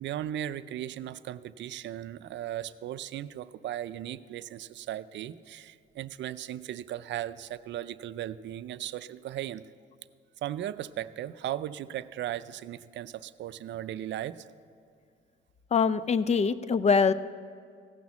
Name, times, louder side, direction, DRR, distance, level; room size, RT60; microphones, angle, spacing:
voice 1, 0.0-9.6 10.4-14.5, right 12 dB, 65° right, 14 dB, 0.5 m, -37 dB
voice 2, 15.7-17.1, left 5 dB, 35° left, 15 dB, 0.5 m, -23 dB
16.0 x 6.1 x 7.1 m, 2.3 s
cardioid pair, 90°, 20 cm